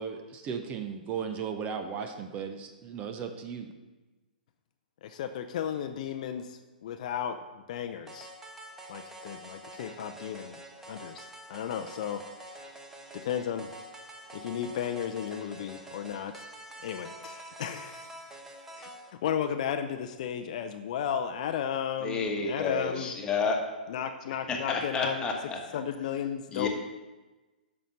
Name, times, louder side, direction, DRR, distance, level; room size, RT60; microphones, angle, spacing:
voice 1, 0.0-3.7, right 6 dB, 25° right, 7 dB, 0.7 m, -36 dB
voice 2, 5.0-8.3 8.9-10.6 10.9-12.2 13.1-13.7 14.3-16.5 16.8-18.3 18.7-18.9 19.2-23.1 23.9-25.2 25.7-26.7, left 8 dB, 50° left, 8 dB, 0.5 m, -34 dB
sound 1, 8.1-19.1, right 1 dB, 10° right, 0.9 m, -47 dB
voice 3, 22.0-23.6 24.5-25.6 26.5-26.7, left 4 dB, 15° left, 1 dB, 1.4 m, -30 dB
9.1 x 6.2 x 5.4 m, 1.2 s
figure-of-eight pair, 115°, 5 cm